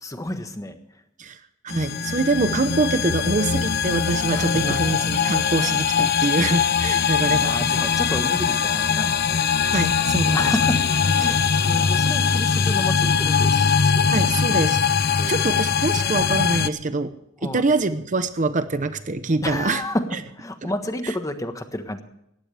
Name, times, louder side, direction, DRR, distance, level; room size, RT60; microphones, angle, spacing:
voice 1, 0.0-1.0 4.3-4.9 7.0-9.4 10.3-14.3 15.2-16.1 17.4-17.7 19.4-22.0, left 1 dB, 15° left, 8 dB, 1.3 m, -31 dB
voice 2, 1.2-7.9 9.7-10.5 11.2-11.4 14.1-17.2 17.4-19.8 20.6-20.7, right 3 dB, 40° right, 11 dB, 0.8 m, -25 dB
sound 1, 1.7-16.7, left 6 dB, 50° left, 0.7 m, -21 dB
19.5 x 15.5 x 3.4 m, 0.76 s
head